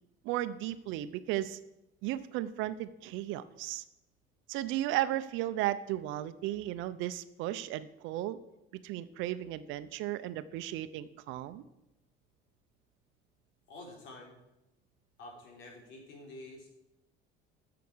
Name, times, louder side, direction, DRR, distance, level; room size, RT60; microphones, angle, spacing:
voice 1, 0.2-1.6 2.0-3.8 4.5-8.4 8.7-11.6, right 14 dB, 70° right, 13 dB, 0.8 m, -35 dB
voice 2, 13.7-14.4 15.2-16.7, left 2 dB, 65° left, 1 dB, 3.7 m, -48 dB
13.5 x 7.0 x 6.3 m, 0.90 s
cardioid pair, 180°, 21 cm